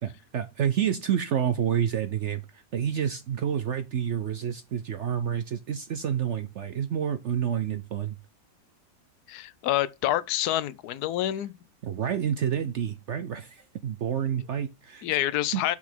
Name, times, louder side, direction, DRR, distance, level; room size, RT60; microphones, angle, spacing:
voice 1, 0.0-8.2 11.8-15.1 15.5-15.6, right 9 dB, 65° right, 0.7 m, -29 dB
voice 2, 9.3-11.5 15.0-15.8, left 13 dB, 75° left, 1.1 m, -27 dB
6.1 x 5.8 x 4.3 m
omnidirectional pair, 1.8 m